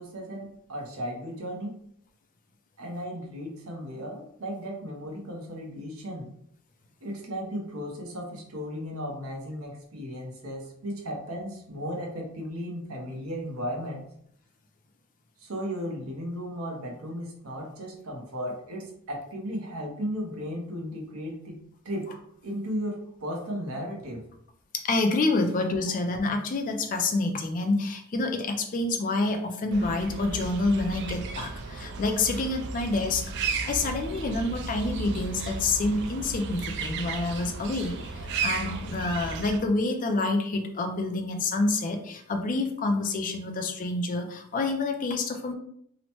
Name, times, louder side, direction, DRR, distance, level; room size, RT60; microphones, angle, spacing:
voice 1, 0.0-1.8 2.8-6.3 7.0-14.0 15.4-21.6 21.8-22.1 22.4-24.2, equal, 70° right, 0 dB, 0.8 m, -35 dB
voice 2, 24.8-33.2 33.6-45.5, left 2 dB, 35° left, 5 dB, 0.3 m, -28 dB
sound 1, 29.7-39.6, right 4 dB, 50° right, 0.3 m, -34 dB
2.9 x 2.1 x 2.9 m, 0.68 s
head